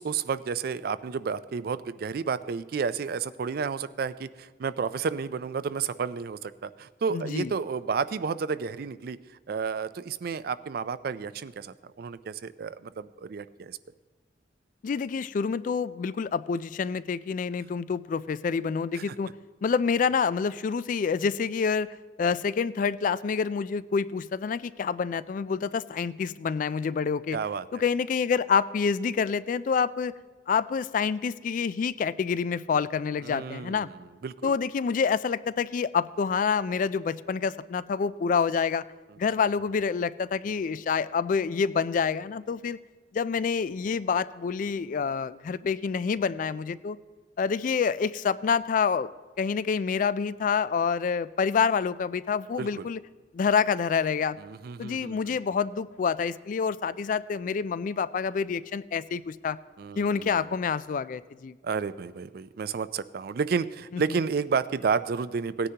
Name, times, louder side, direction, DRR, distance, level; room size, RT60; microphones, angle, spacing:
voice 1, 0.0-9.2 9.5-13.8 18.9-19.2 27.3-27.7 33.2-33.9 34.2-34.5 52.6-52.9 54.4-55.4 59.8-60.4 61.6-65.7, right 5 dB, 55° right, 15 dB, 0.4 m, -31 dB
voice 2, 7.1-7.5 14.8-19.3 19.6-27.4 27.7-30.2 30.5-33.9 34.4-38.8 39.2-42.8 43.1-47.0 47.4-49.1 49.4-53.0 53.3-54.4 54.8-59.6 60.0-61.6 63.9-64.0, left 6 dB, 45° left, 17 dB, 0.3 m, -27 dB
17.5 x 9.9 x 2.8 m, 1.4 s
head